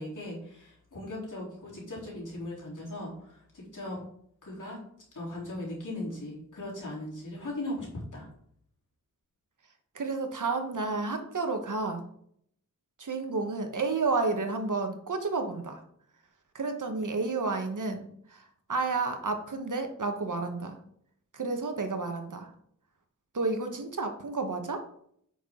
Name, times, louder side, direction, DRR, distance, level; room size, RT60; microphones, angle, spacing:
voice 1, 0.0-4.0 4.4-4.8 5.1-8.3, left 1 dB, 70° left, -4 dB, 3.8 m, -38 dB
voice 2, 9.9-12.0 13.0-15.8 16.5-20.8 21.3-22.5 23.3-24.8, right 3 dB, 70° right, 5 dB, 1.3 m, -31 dB
9.2 x 5.8 x 3.8 m, 0.67 s
wide cardioid pair, 90°, 32 cm